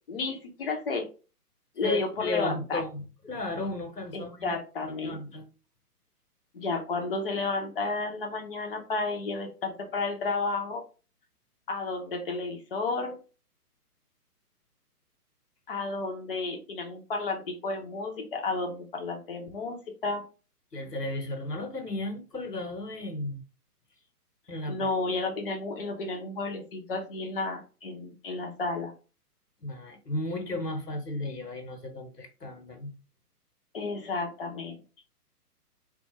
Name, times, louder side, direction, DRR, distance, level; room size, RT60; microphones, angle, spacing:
voice 1, 0.1-1.1 1.8-2.8 4.1-5.2 6.5-10.8 11.7-13.2 15.7-20.2 24.7-28.9 33.7-34.8, left 3 dB, 35° left, 0.7 m, -32 dB
voice 2, 1.8-5.4 20.7-23.4 24.5-24.9 29.6-32.9, left 2 dB, 90° left, 1.1 m, -34 dB
3.6 x 2.3 x 3.0 m
figure-of-eight pair, 130°, 47 cm